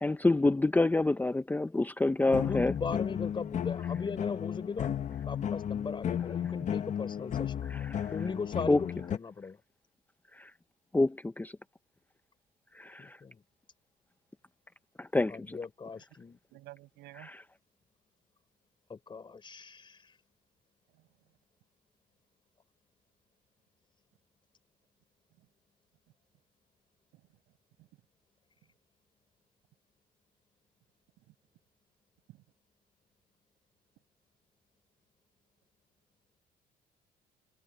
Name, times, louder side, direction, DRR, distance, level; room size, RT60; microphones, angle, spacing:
voice 1, 0.0-2.7 7.7-8.1 8.7-8.8 10.4-10.5 10.9-11.5 12.8-13.2 15.0-15.6, left 2 dB, 10° left, 0.7 m, -27 dB
sound 1, 2.3-9.2, left 9 dB, 45° left, 1.1 m, -34 dB
voice 2, 2.3-7.6 8.1-9.6 13.0-13.4 15.3-16.4 18.9-20.1, left 5 dB, 30° left, 4.3 m, -39 dB
voice 3, 16.5-17.3 20.9-21.1 25.4-25.5 27.1-27.4 27.8-27.9 31.2-31.3 32.3-32.4, right 19 dB, 90° right, 6.4 m, -53 dB
cardioid pair, 110°, 17 cm